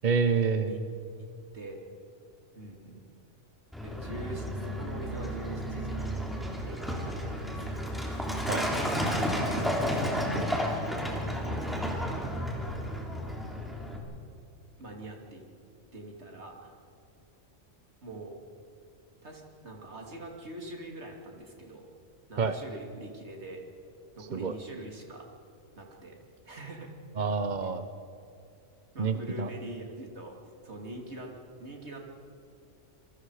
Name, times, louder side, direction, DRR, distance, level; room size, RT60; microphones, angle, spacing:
voice 1, 0.0-0.8 8.5-8.7 22.4-22.6 24.3-24.5 27.2-27.8 29.0-29.5, right 5 dB, 40° right, 9 dB, 0.9 m, -27 dB
voice 2, 2.5-3.0 3.8-6.1 6.6-8.0 9.2-10.9 11.3-11.9 12.4-12.9 14.8-15.5 15.9-16.8 18.0-18.4 19.2-21.9 22.3-23.6 24.2-25.3 25.7-26.2 26.4-26.9 28.9-30.3 30.6-32.0, right 1 dB, 60° right, 1 dB, 3.2 m, -44 dB
Truck, 3.7-14.0, equal, ahead, 3.4 m, -32 dB
28.0 x 22.0 x 4.9 m, 2.6 s
omnidirectional pair, 1.3 m